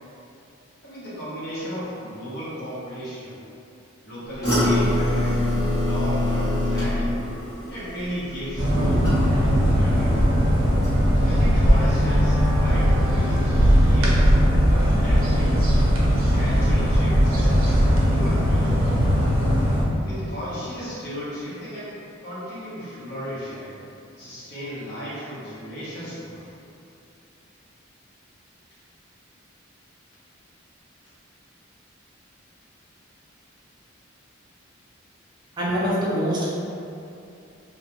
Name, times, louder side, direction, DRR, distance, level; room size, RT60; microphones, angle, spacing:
voice 1, 0.8-3.4 4.0-5.4 5.7-7.2 7.7-9.1 9.7-10.2 11.1-14.3 14.9-16.0 16.3-17.7 18.1-18.9 20.0-23.8 24.2-26.5, equal, 55° left, -10 dB, 0.9 m, -35 dB
sound 1, 4.4-9.6 10.0-10.4 10.8-10.9, left 1 dB, 15° left, 0.9 m, -24 dB
sound 2, 8.6-19.8, equal, 80° right, 0.5 m, -19 dB
voice 2, 35.6-36.5, equal, 20° right, -8 dB, 0.5 m, -24 dB
2.3 x 2.2 x 2.9 m, 2.6 s
head